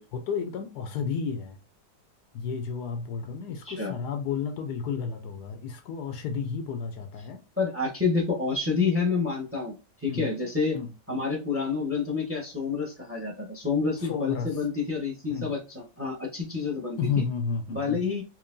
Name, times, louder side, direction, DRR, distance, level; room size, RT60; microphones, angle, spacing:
voice 1, 0.1-1.6 2.3-7.4 10.1-10.3 10.7-10.9 14.0-14.6 15.3-15.5 17.0-18.0, left 6 dB, 70° left, 1.1 m, -32 dB
voice 2, 7.6-10.8 11.1-17.2 17.7-18.2, left 4 dB, 10° right, 0.9 m, -28 dB
4.4 x 2.9 x 2.6 m
omnidirectional pair, 1.9 m